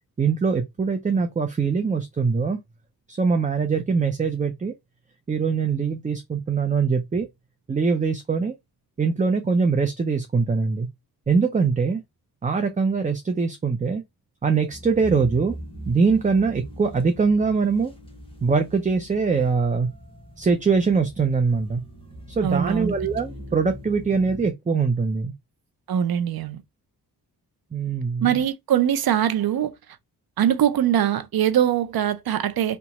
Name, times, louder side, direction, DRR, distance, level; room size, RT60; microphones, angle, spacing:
voice 1, 0.2-2.6 3.1-4.7 5.3-7.3 7.7-8.5 9.0-10.9 11.3-12.0 12.4-14.0 14.4-15.6 15.9-17.9 18.4-19.9 20.4-21.8 22.3-25.3 27.7-28.3, right 5 dB, 20° right, 0.4 m, -22 dB
sound 1, 14.7-24.5, equal, 15° left, 1.0 m, -41 dB
voice 2, 22.4-22.9 25.9-26.6 28.2-29.7 30.4-32.8, right 10 dB, 70° right, 0.5 m, -22 dB
2.8 x 2.2 x 4.0 m
wide cardioid pair, 100°, 39 cm